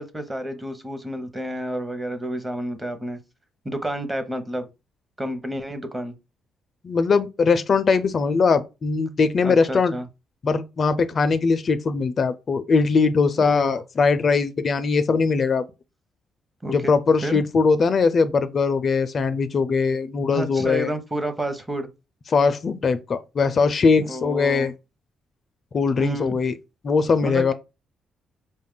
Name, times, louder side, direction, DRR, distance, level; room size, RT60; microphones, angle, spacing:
voice 1, 0.0-3.2 3.6-4.7 5.2-6.2 9.4-10.1 13.4-13.8 16.6-16.9 17.2-17.4 20.3-21.9 24.0-24.7 26.0-26.4 27.2-27.5, right 1 dB, 15° right, 0.8 m, -30 dB
voice 2, 6.8-9.9 10.4-15.6 16.7-20.9 22.3-24.7 25.7-26.5 26.8-27.5, left 4 dB, 45° left, 0.4 m, -21 dB
4.9 x 2.3 x 3.7 m
cardioid pair, 90°, 0 cm